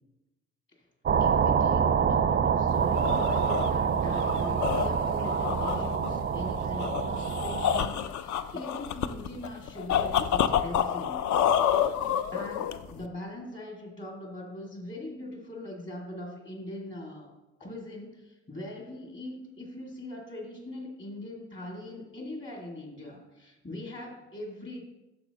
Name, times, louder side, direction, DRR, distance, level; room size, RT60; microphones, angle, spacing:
sound 1, 1.1-7.9, right 7 dB, 30° right, 0.4 m, -26 dB
voice 1, 1.2-11.5 12.3-17.3 17.6-24.8, left 1 dB, 30° left, 0 dB, 2.4 m, -41 dB
sound 2, 2.7-13.0, left 9 dB, 50° left, 0.6 m, -29 dB
8.5 x 6.4 x 3.0 m, 1.0 s
hypercardioid pair, 45°, 36 cm